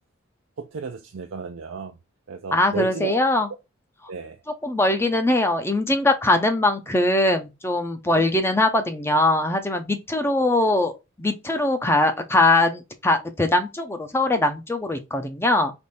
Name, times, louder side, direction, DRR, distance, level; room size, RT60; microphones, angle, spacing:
voice 1, 0.6-2.0 2.3-3.2 4.1-4.4 8.1-8.3, right 5 dB, 80° right, 0.5 m, -33 dB
voice 2, 2.5-3.5 4.6-10.9 11.2-15.7, left 2 dB, 10° left, 0.5 m, -21 dB
3.6 x 3.1 x 4.1 m
head